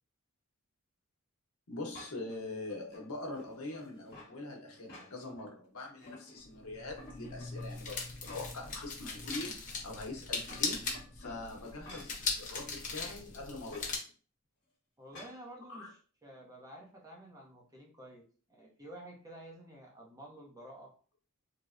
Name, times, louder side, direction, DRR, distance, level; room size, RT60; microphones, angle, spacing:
voice 1, 1.7-9.6 9.8-10.8 11.1-14.0 15.7-15.9, left 2 dB, 80° left, 0 dB, 0.8 m, -43 dB
sound 1, 1.9-2.4 2.9-4.4 4.7-5.5 5.8-6.6 7.0-8.7 9.1-9.2 10.2-12.2 13.7-13.9 15.1-15.4, left 1 dB, 55° left, 1.0 m, -53 dB
sound 2, 6.4-14.0, left 4 dB, 40° left, 0.6 m, -39 dB
voice 2, 15.0-20.9, right 1 dB, 15° right, -1 dB, 0.6 m, -51 dB
3.2 x 2.0 x 2.4 m, 0.40 s
head